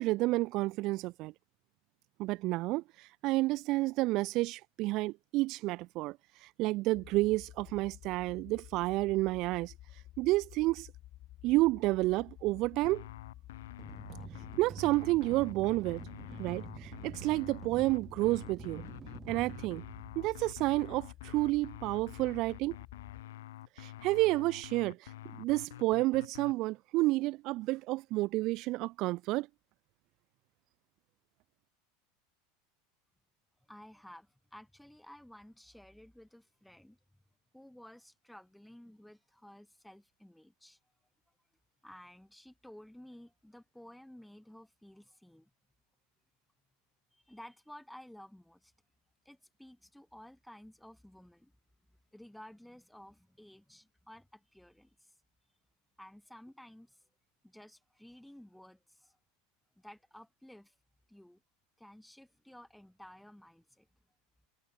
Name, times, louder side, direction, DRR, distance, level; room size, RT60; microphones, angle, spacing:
voice 1, 0.0-1.3 2.2-9.7 10.2-10.9 11.4-13.0 14.6-16.0 16.4-18.8 19.3-19.8 20.2-22.8 23.8-29.5, right 20 dB, 50° right, 0.4 m, -30 dB
sound 1, 6.9-23.2, left 14 dB, 45° left, 1.4 m, -52 dB
sound 2, 12.8-26.6, left 14 dB, 85° left, 1.2 m, -48 dB
sound 3, 13.8-20.6, right 8 dB, 25° right, 2.8 m, -48 dB
voice 2, 33.7-37.2 37.5-40.8 41.8-45.5 47.1-48.7 49.3-51.5 52.1-55.1 56.0-57.0 57.4-59.2 59.8-60.7 61.1-61.4 61.8-63.9, left 1 dB, ahead, 3.8 m, -54 dB
supercardioid pair, 125°, 0 cm